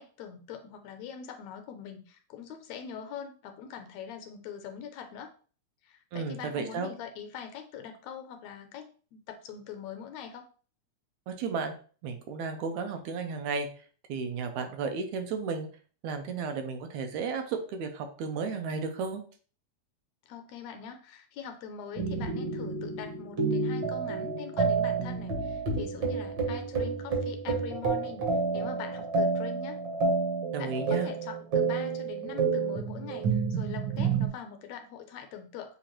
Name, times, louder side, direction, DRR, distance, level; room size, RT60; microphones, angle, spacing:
voice 1, 0.0-5.3 5.8-10.4 20.3-29.8 30.6-35.8, left 7 dB, 80° left, 6 dB, 1.7 m, -43 dB
voice 2, 6.1-6.9 11.3-11.7 12.0-13.7 14.1-15.7 16.0-19.2 30.5-31.1, right 5 dB, 80° right, 6 dB, 1.9 m, -33 dB
sound 1, 22.0-34.3, right 4 dB, 60° right, 1.3 m, -29 dB
7.0 x 2.5 x 3.0 m, 0.40 s
omnidirectional pair, 3.4 m